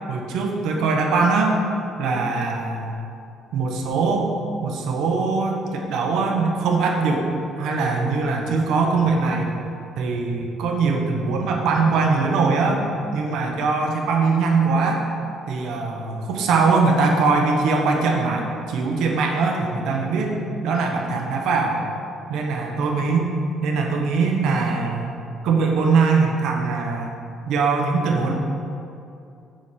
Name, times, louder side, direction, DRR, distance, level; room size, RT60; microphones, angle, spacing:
voice 1, 0.1-1.6 2.0-3.0 3.5-4.3 4.6-7.3 7.6-9.5 10.0-15.0 15.5-20.3 20.6-21.8 22.3-23.3 23.6-25.1 25.4-27.1 27.5-28.3, right 4 dB, 70° right, 1 dB, 1.2 m, -21 dB
8.0 x 4.3 x 6.8 m, 2.6 s
cardioid pair, 175°, 0 cm